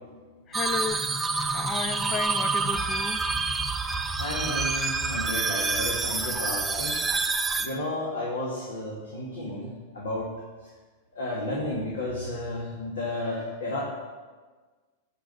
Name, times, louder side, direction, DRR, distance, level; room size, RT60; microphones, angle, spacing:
voice 1, 0.5-1.1 1.5-3.2, left 6 dB, 30° left, 12 dB, 0.7 m, -33 dB
sound 1, 0.5-7.7, right 4 dB, 10° right, 0.8 m, -27 dB
voice 2, 4.2-7.0 7.6-9.7 9.9-10.3 11.1-13.8, left 2 dB, 75° left, -4 dB, 2.4 m, -32 dB
12.5 x 5.3 x 6.9 m, 1.4 s
hypercardioid pair, 100°, 0 cm